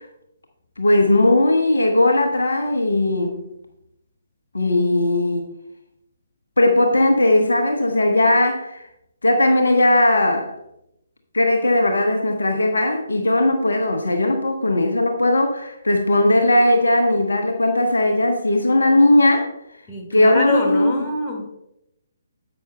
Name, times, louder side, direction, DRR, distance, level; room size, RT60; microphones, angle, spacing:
voice 1, 0.8-3.4 4.5-5.5 6.6-8.9 9.2-10.5 11.3-19.5 20.1-20.9, left 1 dB, 70° left, 3 dB, 1.1 m, -18 dB
voice 2, 19.9-21.6, left 2 dB, 20° left, -1 dB, 2.0 m, -26 dB
11.0 x 7.9 x 2.2 m, 0.82 s
figure-of-eight pair, 135°, 0 cm